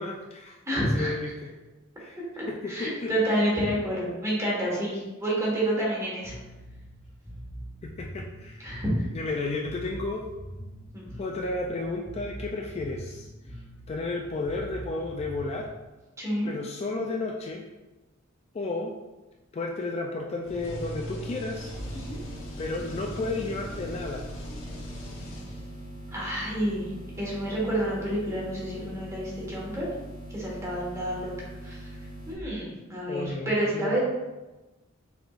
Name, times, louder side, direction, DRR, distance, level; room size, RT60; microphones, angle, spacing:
voice 1, 0.0-0.6 0.8-1.5 2.0-2.2 2.5-3.4 7.8-8.7 9.1-10.2 11.2-13.3 13.9-15.7 16.4-17.6 18.5-18.9 19.5-21.7 22.6-24.2 33.1-34.0, left 3 dB, 30° left, 0 dB, 0.3 m, -32 dB
voice 2, 0.6-1.3 2.2-6.3 8.6-9.1 10.9-11.1 16.2-16.5 22.1-22.2 26.1-26.9 27.2-29.9 30.3-31.3 31.6-31.9 32.3-34.0, right 1 dB, 15° right, -5 dB, 1.4 m, -29 dB
Bass guitar, 6.2-15.7, equal, ahead, 1.5 m, -43 dB
sound 1, 20.4-25.9, equal, 75° left, 1.0 m, -40 dB
sound 2, 21.7-32.3, right 1 dB, 40° right, 1.5 m, -42 dB
5.9 x 3.6 x 2.4 m, 1.1 s
head